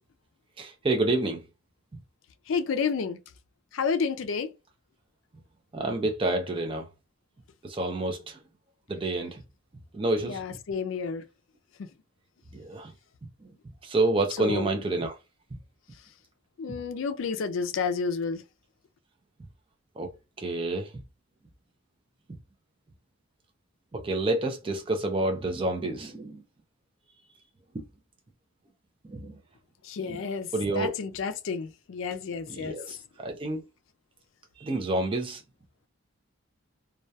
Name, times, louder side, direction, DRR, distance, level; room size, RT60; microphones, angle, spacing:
voice 1, 0.6-1.4 5.7-6.9 7.6-8.4 8.9-9.4 9.9-10.4 12.5-12.9 13.8-15.1 16.7-16.8 20.0-20.1 20.4-20.9 23.9-26.4 29.1-29.4 30.0-30.2 30.5-30.9 32.5-33.6 34.6-35.4, right 2 dB, 25° right, 0.4 m, -28 dB
voice 2, 2.5-3.2 3.7-4.5 10.3-11.2 11.8-11.9 14.4-14.7 16.6-18.4 29.8-30.5 30.7-32.8, left 5 dB, 65° left, 0.4 m, -30 dB
2.2 x 2.2 x 2.6 m
head